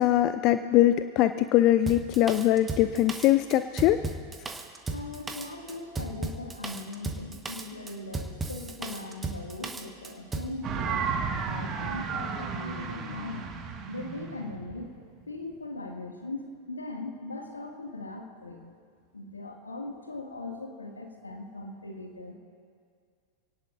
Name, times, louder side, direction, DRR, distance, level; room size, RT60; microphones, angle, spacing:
voice 1, 0.0-4.0, left 13 dB, 40° left, 12 dB, 0.5 m, -22 dB
Drum kit, 1.9-10.6, right 3 dB, 15° right, 1.2 m, -36 dB
voice 2, 4.9-11.1 11.5-13.6 13.9-15.0 15.3-18.6 19.1-22.3, left 2 dB, 80° left, 2 dB, 2.0 m, -39 dB
sound 1, 10.6-15.5, right 5 dB, 30° right, 1.7 m, -33 dB
27.5 x 18.0 x 2.6 m, 2.2 s
figure-of-eight pair, 90°, 0 cm